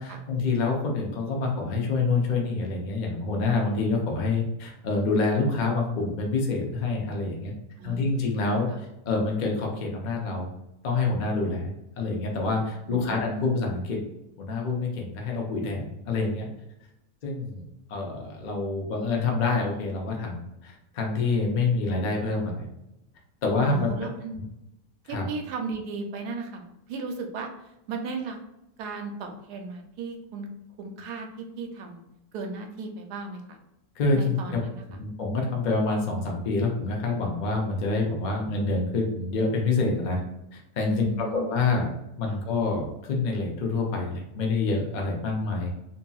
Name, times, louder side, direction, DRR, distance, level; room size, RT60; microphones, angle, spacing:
voice 1, 0.0-7.5 7.8-10.5 10.8-11.7 12.0-14.0 14.4-16.5 17.2-17.6 17.9-22.7 23.4-23.9 24.3-24.4 25.1-25.3 34.0-34.6 35.0-40.2 40.5-41.9 42.2-45.7, left 3 dB, 70° left, 0 dB, 0.4 m, -27 dB
voice 2, 7.8-8.3 8.7-8.8 12.9-13.6 23.7-24.4 25.1-27.5 27.9-28.4 28.8-30.5 30.8-32.0 32.3-33.6 34.1-35.0 40.8-41.5 42.3-42.4, right 4 dB, 85° right, 3 dB, 1.1 m, -36 dB
2.9 x 2.7 x 2.3 m, 0.89 s
omnidirectional pair, 1.7 m